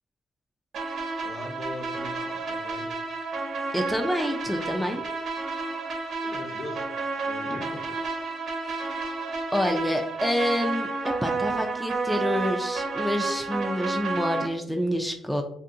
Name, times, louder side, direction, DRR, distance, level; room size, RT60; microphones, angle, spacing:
sound 1, 0.7-14.5, right 3 dB, 65° right, 0.7 m, -31 dB
voice 1, 1.2-2.9 6.2-6.9 7.2-8.2, left 1 dB, 50° left, 1 dB, 0.7 m, -41 dB
voice 2, 3.7-5.0 7.5-7.7 8.7-9.1 9.5-15.4, equal, ahead, 2 dB, 0.3 m, -28 dB
2.6 x 2.5 x 2.5 m, 0.71 s
cardioid pair, 90°, 0 cm